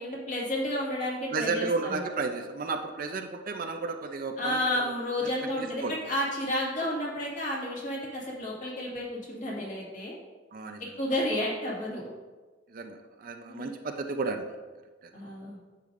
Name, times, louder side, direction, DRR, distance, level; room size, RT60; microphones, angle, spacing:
voice 1, 0.0-2.0 4.4-10.1 11.0-12.1 13.5-13.7 15.1-15.6, left 1 dB, 40° left, -4 dB, 2.0 m, -31 dB
voice 2, 1.3-5.9 10.5-10.8 12.7-14.5 15.0-15.1, right 4 dB, 45° right, 5 dB, 0.5 m, -33 dB
9.4 x 6.8 x 2.6 m, 1.3 s
head